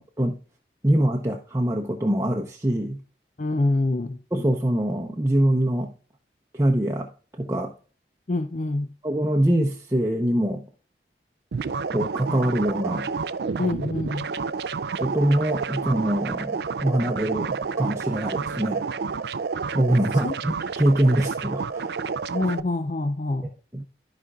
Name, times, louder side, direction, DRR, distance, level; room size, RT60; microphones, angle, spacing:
voice 1, 0.8-3.0 4.3-5.9 6.5-7.1 7.4-7.7 9.0-10.6 11.9-13.1 15.0-18.9 19.7-22.0 23.7-23.8, right 1 dB, 15° right, 0.8 m, -23 dB
voice 2, 3.4-4.2 8.3-8.9 13.6-14.3 20.2-20.3 21.1-21.2 22.3-23.5, left 2 dB, 40° left, 0.5 m, -26 dB
sound 1, 11.5-22.6, right 5 dB, 70° right, 0.4 m, -30 dB
14.0 x 5.2 x 2.3 m
head